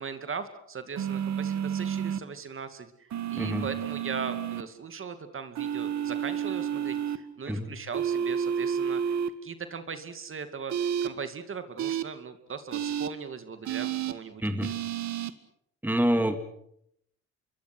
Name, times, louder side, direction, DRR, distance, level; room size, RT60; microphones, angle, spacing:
voice 1, 0.0-9.2 9.4-14.6, right 5 dB, 45° right, 9 dB, 2.5 m, -39 dB
sound 1, 1.0-2.2 3.1-4.6 5.6-7.2 7.9-9.3 10.7-11.1 11.8-12.0 12.7-13.1 13.7-14.1 14.6-15.3, right 8 dB, 65° right, 1.7 m, -30 dB
voice 2, 15.8-16.4, equal, 5° right, 8 dB, 2.2 m, -26 dB
27.0 x 23.0 x 6.3 m, 0.72 s
cardioid pair, 90°, 30 cm